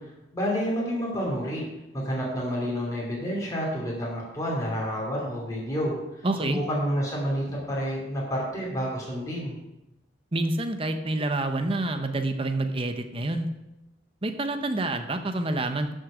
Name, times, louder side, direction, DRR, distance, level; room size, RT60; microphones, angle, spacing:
voice 1, 0.0-1.7 1.9-9.6, equal, 20° left, -5 dB, 2.9 m, -29 dB
voice 2, 6.2-6.6 10.3-13.5 14.2-15.9, right 2 dB, 30° right, 7 dB, 0.8 m, -27 dB
12.0 x 6.6 x 5.1 m, 0.95 s
head